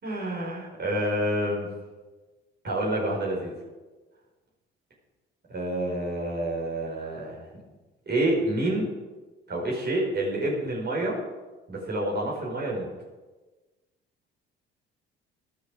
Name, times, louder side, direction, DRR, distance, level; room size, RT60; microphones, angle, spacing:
voice 1, 0.0-1.7 2.6-3.5 5.5-7.4 8.1-8.9 9.5-11.1 11.7-12.9, right 1 dB, 35° right, -3 dB, 5.0 m, -28 dB
12.5 x 12.0 x 6.5 m, 1.2 s
figure-of-eight pair, 55°, 30 cm